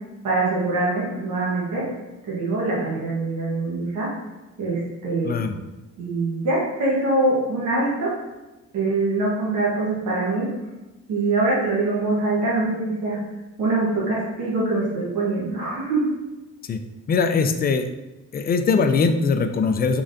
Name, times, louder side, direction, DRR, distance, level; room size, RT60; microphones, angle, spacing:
voice 1, 0.2-1.8 2.3-4.1 4.6-5.4 6.0-8.1 8.7-10.5 11.1-13.2 13.6-16.1, right 2 dB, 75° right, -5 dB, 1.2 m, -23 dB
voice 2, 5.2-5.6 16.6-16.8 17.1-17.9 18.3-20.0, left 4 dB, 30° left, 7 dB, 0.4 m, -21 dB
3.9 x 3.2 x 2.6 m, 1.1 s
cardioid pair, 90°, 30 cm